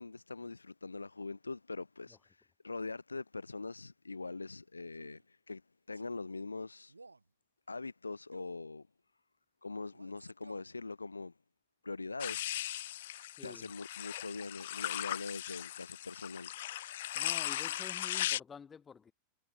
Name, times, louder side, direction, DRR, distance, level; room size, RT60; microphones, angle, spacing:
voice 1, 0.0-5.6 5.9-6.9 7.7-8.9 9.6-11.3 11.8-12.7 13.4-17.1, left 3 dB, 80° left, 2.5 m, -43 dB
Male speech man speaking, 4.9-5.3 5.9-6.2 6.9-7.3 8.3-8.6 9.9-10.8, right 3 dB, 80° right, 4.9 m, -57 dB
sound 1, 12.2-18.4, left 14 dB, 55° left, 0.8 m, -38 dB
voice 2, 13.4-13.7 17.1-19.1, left 6 dB, 20° left, 6.6 m, -50 dB
figure-of-eight pair, 90°, 0 cm